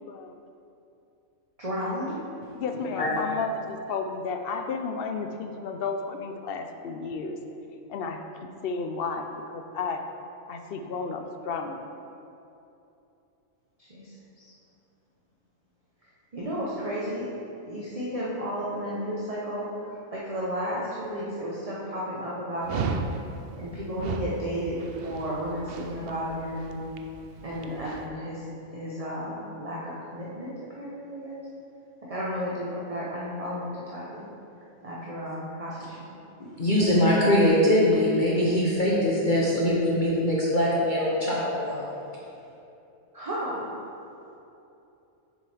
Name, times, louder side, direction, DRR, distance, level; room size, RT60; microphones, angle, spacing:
voice 1, 1.6-2.2 13.8-14.5 16.3-17.3 17.7-23.0 23.6-26.8 27.4-28.4 28.7-31.4 32.0-34.3 34.8-36.0 43.1-43.7, equal, 30° right, -6 dB, 0.8 m, -33 dB
voice 2, 2.5-7.4 7.9-8.2 8.6-10.0 10.5-11.8, left 4 dB, 65° left, 5 dB, 0.6 m, -32 dB
Dog, 22.6-28.1, right 5 dB, 70° right, 0.5 m, -35 dB
voice 3, 36.4-41.8, left 1 dB, 40° left, -6 dB, 1.0 m, -22 dB
7.5 x 6.9 x 3.4 m, 2.8 s
omnidirectional pair, 1.5 m